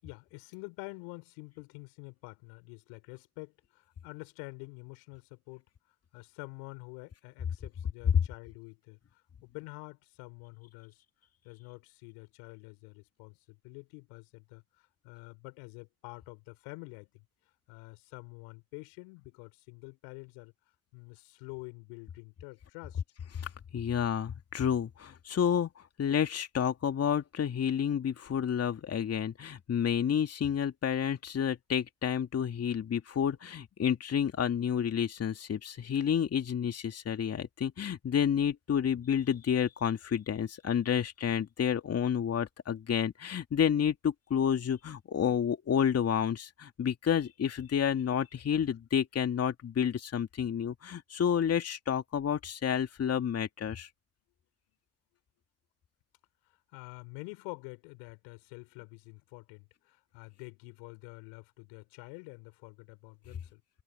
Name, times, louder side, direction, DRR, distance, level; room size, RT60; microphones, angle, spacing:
voice 1, 0.0-5.7 6.1-11.0 11.4-17.3 17.7-20.5 20.9-23.0 56.5-63.6, left 33 dB, 70° left, 7.2 m, -48 dB
voice 2, 23.4-25.7 26.0-53.9, left 8 dB, 40° left, 2.7 m, -30 dB
hypercardioid pair, 65°, 40 cm